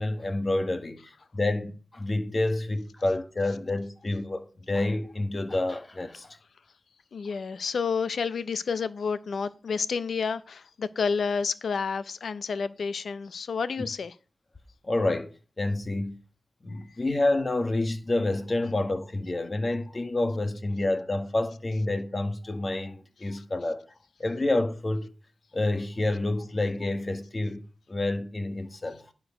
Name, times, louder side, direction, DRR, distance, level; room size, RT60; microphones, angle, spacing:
voice 1, 0.0-6.4 14.8-15.3 15.6-16.2 16.6-23.8 24.2-25.1 25.5-27.6 27.9-29.0, left 2 dB, 35° left, 1.4 m, -28 dB
voice 2, 7.1-14.1, left 5 dB, 80° left, 0.6 m, -30 dB
11.0 x 4.6 x 5.7 m
cardioid pair, 75°, 0 cm